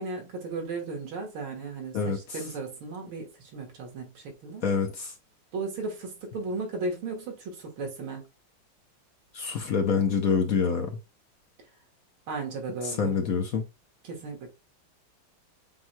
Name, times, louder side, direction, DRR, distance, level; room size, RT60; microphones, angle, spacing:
voice 1, 0.0-4.6 5.5-8.3 12.3-13.2 14.0-14.5, right 3 dB, 85° right, 2.3 m, -35 dB
voice 2, 4.6-5.1 9.3-11.0 12.8-13.6, left 5 dB, 60° left, 1.0 m, -26 dB
7.2 x 3.1 x 2.2 m
omnidirectional pair, 2.2 m